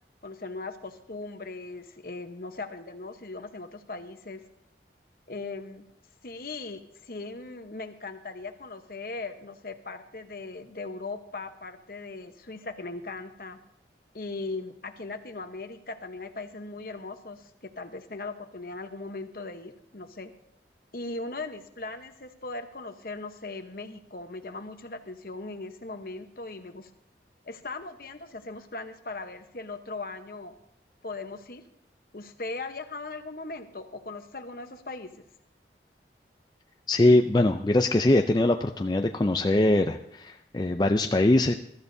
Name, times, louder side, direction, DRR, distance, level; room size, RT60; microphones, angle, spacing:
voice 1, 0.2-4.4 5.3-5.9 6.2-13.6 14.1-20.3 20.9-26.9 27.4-30.6 31.0-31.6 32.1-35.2, left 3 dB, 55° left, 7 dB, 1.0 m, -39 dB
voice 2, 36.9-41.5, left 2 dB, 25° left, 5 dB, 0.4 m, -22 dB
22.0 x 13.0 x 2.7 m, 0.76 s
head